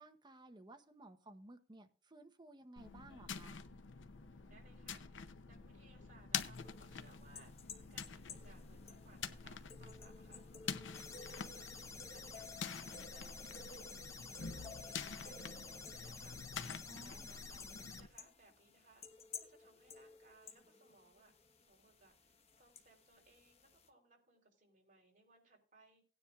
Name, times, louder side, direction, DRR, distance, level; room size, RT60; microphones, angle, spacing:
voice 1, 0.0-3.6 16.9-17.3, right 2 dB, 25° right, 7 dB, 0.9 m, -57 dB
sound 1, 2.8-18.1, left 6 dB, 80° left, 0.6 m, -47 dB
voice 2, 4.1-16.4 17.0-21.4 21.7-26.0, right 2 dB, 45° right, 0 dB, 3.5 m, -67 dB
sound 2, 6.5-23.9, left 4 dB, 35° left, 1.1 m, -56 dB
sound 3, 10.9-18.0, left 4 dB, 15° left, 0.7 m, -52 dB
17.5 x 9.8 x 2.4 m, 0.39 s
head